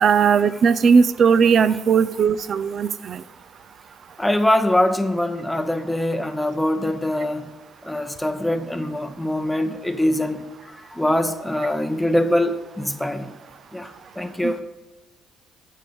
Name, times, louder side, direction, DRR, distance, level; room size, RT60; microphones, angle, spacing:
voice 1, 0.0-3.2 14.4-14.6, right 6 dB, 55° right, 0.4 m, -18 dB
voice 2, 4.2-7.5 7.8-13.3 13.7-14.6, left 1 dB, 5° left, 0.9 m, -23 dB
7.4 x 5.4 x 6.9 m
hypercardioid pair, 55°, 0 cm